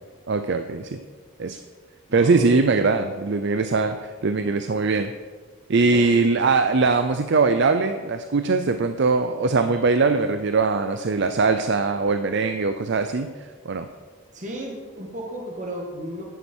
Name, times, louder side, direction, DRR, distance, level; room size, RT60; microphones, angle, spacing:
voice 1, 0.3-1.0 1.4-1.6 2.1-5.1 5.7-13.3 13.7-13.9, right 4 dB, 55° right, 8 dB, 0.5 m, -21 dB
voice 2, 2.1-2.9 5.9-6.1 14.3-16.2, equal, 35° right, -1 dB, 1.6 m, -34 dB
11.0 x 10.0 x 4.5 m, 1.5 s
head